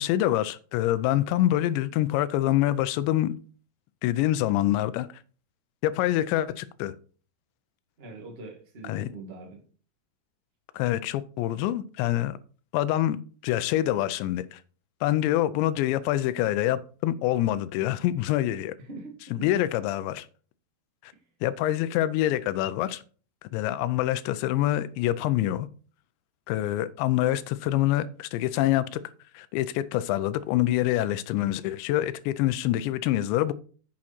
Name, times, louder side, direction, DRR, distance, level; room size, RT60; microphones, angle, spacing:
voice 1, 0.0-3.3 4.0-5.1 5.8-7.0 8.8-9.1 10.7-12.4 12.7-13.2 13.4-14.6 15.0-18.8 19.3-20.3 21.0-21.1 21.4-23.0 23.4-25.7 26.5-29.0 29.3-33.5, left 14 dB, 85° left, 2.9 m, -26 dB
voice 2, 8.0-9.6 18.9-19.5, right 3 dB, 30° right, 1.2 m, -42 dB
8.8 x 7.1 x 4.4 m
omnidirectional pair, 5.1 m